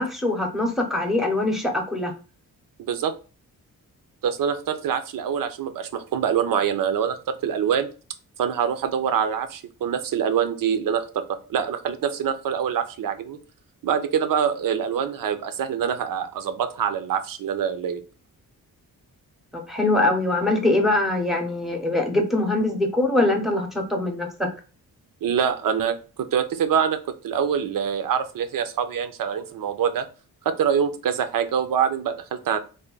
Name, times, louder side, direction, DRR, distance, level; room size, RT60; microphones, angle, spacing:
voice 1, 0.0-2.1 19.5-24.5, left 2 dB, ahead, 1 dB, 0.7 m, -23 dB
voice 2, 4.2-7.9 8.4-13.4 13.8-18.0 25.2-30.1 30.4-32.6, right 8 dB, 65° right, 10 dB, 0.6 m, -25 dB
3.4 x 2.1 x 3.8 m, 0.35 s
wide cardioid pair, 135°, 35 cm